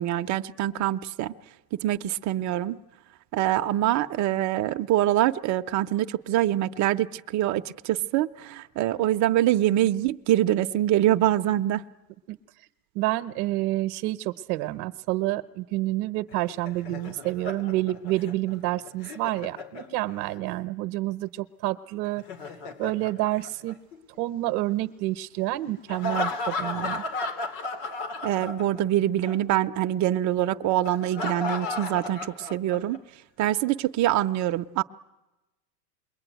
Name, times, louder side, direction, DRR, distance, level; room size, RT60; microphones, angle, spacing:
voice 1, 0.0-1.3 1.8-2.8 3.3-11.8 28.2-33.0 33.4-34.8, right 13 dB, 35° right, 8 dB, 0.8 m, -24 dB
voice 2, 12.3-12.7 12.9-22.2 22.8-23.8 24.2-27.0, right 17 dB, 60° right, 8 dB, 1.0 m, -29 dB
Laughter, 16.3-20.4 22.0-24.2 25.9-29.0 29.2-29.4 30.9-33.0, left 3 dB, 75° left, 3.1 m, -34 dB
28.0 x 22.0 x 9.3 m, 1.1 s
supercardioid pair, 120°, 50 cm